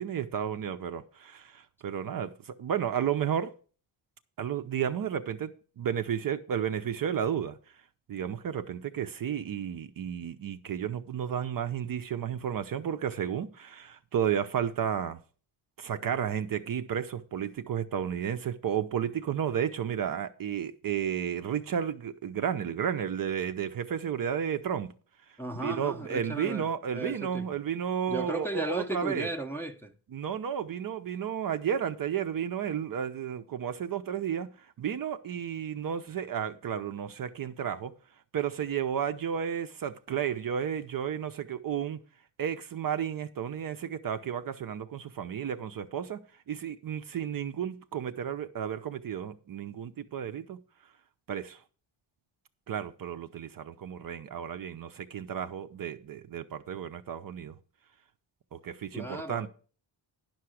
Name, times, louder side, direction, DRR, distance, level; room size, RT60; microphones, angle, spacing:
voice 1, 0.0-3.5 4.4-7.6 8.1-15.2 15.8-24.9 25.5-29.3 30.1-34.5 34.8-37.9 38.3-42.0 42.4-50.6 51.3-51.6 52.7-57.5 58.5-59.5, right 8 dB, 45° right, 0.6 m, -32 dB
voice 2, 25.4-26.7 26.9-27.5 28.1-29.9 58.9-59.5, right 1 dB, 5° left, 0.6 m, -35 dB
10.5 x 5.8 x 6.2 m
cardioid pair, 140°, 49 cm